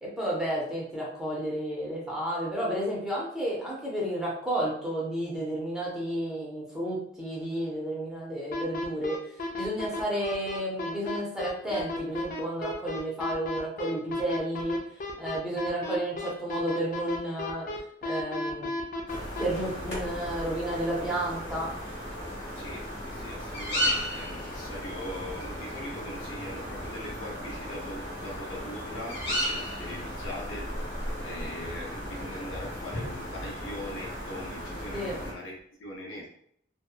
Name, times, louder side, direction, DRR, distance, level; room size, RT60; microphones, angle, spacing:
voice 1, 0.0-9.2 9.6-14.8 15.2-17.7 18.0-18.7 19.4-21.7 34.9-35.2, right 1 dB, 5° right, -5 dB, 0.6 m, -31 dB
sound 1, 8.5-19.4, left 2 dB, 45° left, 0.4 m, -33 dB
sound 2, 19.1-35.3, equal, 60° left, 1.0 m, -35 dB
voice 2, 22.5-36.3, left 1 dB, 85° left, -3 dB, 0.6 m, -41 dB
2.7 x 2.2 x 2.3 m, 0.67 s
head